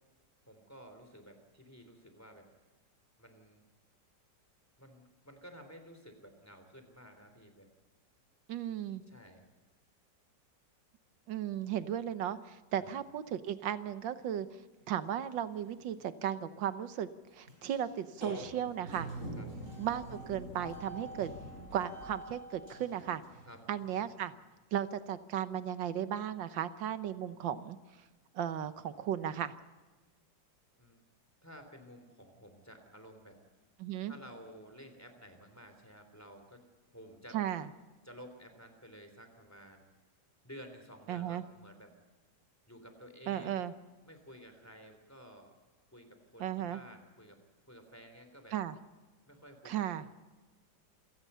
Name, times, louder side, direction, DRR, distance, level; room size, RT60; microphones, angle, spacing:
voice 1, 0.5-2.5 3.2-3.6 4.8-7.7 9.1-9.4 12.7-13.0 19.4-19.5 23.5-23.6 30.8-31.0 31.4-33.4 34.1-36.6 36.9-37.4 38.0-39.9 40.4-41.9 42.7-43.6 44.0-45.6 45.9-47.4 47.7-48.5 49.3-50.1, equal, 10° left, 6 dB, 3.4 m, -53 dB
voice 2, 8.5-9.0 11.3-14.5 14.9-19.1 19.8-21.3 21.7-23.2 23.7-24.3 24.7-27.8 28.4-29.5 33.8-34.1 37.3-37.7 41.1-41.4 43.3-43.7 46.4-46.8 48.5-48.8 49.7-50.1, right 10 dB, 85° right, 12 dB, 1.7 m, -35 dB
sound 1, 15.1-15.2 15.5-15.6 16.0-16.1 17.5-17.9 18.1-24.2, right 1 dB, 40° right, 6.1 m, -45 dB
28.0 x 17.5 x 5.6 m, 1.3 s
omnidirectional pair, 2.0 m